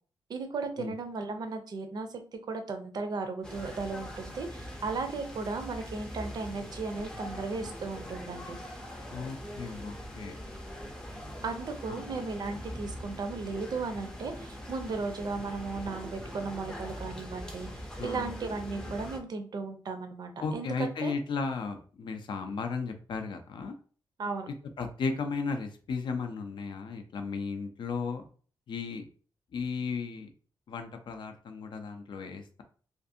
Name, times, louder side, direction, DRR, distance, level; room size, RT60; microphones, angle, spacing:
voice 1, 0.3-2.2 2.5-8.6 11.4-20.7 21.0-21.1 24.2-24.5, right 4 dB, 50° right, 7 dB, 0.4 m, -36 dB
sound 1, 3.4-19.2, equal, 10° left, 0.5 m, -42 dB
voice 2, 9.1-10.4 11.9-12.0 18.0-18.3 20.4-23.7 24.8-28.2 28.7-29.1 29.5-30.3 30.7-32.6, left 4 dB, 65° left, 6 dB, 0.4 m, -35 dB
2.5 x 2.5 x 2.6 m, 0.42 s
wide cardioid pair, 140°, 9 cm